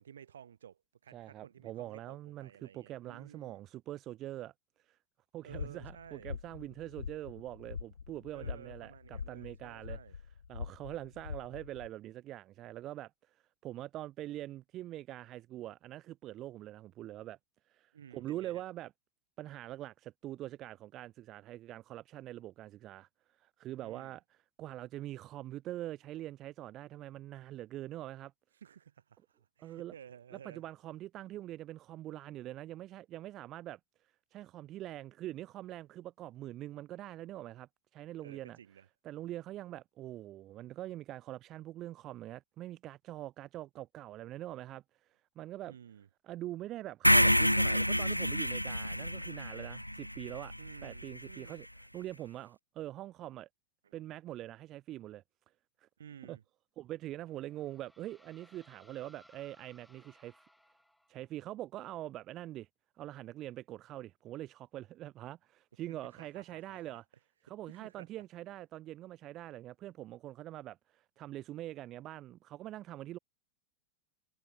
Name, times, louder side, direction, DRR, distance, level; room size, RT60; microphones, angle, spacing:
voice 1, 0.0-3.6 5.4-6.3 8.3-10.1 17.9-18.6 23.8-24.2 28.6-30.6 38.2-38.9 45.7-46.1 50.6-51.6 53.8-54.0 56.0-56.4 65.9-67.0 67.7-68.1, right 8 dB, 65° right, 6.3 m, -54 dB
voice 2, 1.1-4.5 4.9-5.0 5.3-10.0 10.5-17.4 17.7-18.9 19.4-28.3 29.6-29.9 30.4-38.6 39.0-45.7 46.2-50.5 50.8-51.7 51.9-53.5 53.9-55.2 55.8-55.9 56.2-56.4 56.8-60.4 61.1-62.7 63.0-67.0 67.4-73.2, right 14 dB, 35° right, 1.4 m, -44 dB
sound 1, 5.5-11.9, left 6 dB, 70° left, 2.3 m, -44 dB
sound 2, 47.0-51.2, equal, 90° left, 0.3 m, -28 dB
sound 3, 57.0-61.4, equal, ahead, 6.7 m, -64 dB
figure-of-eight pair, 90°, 0 cm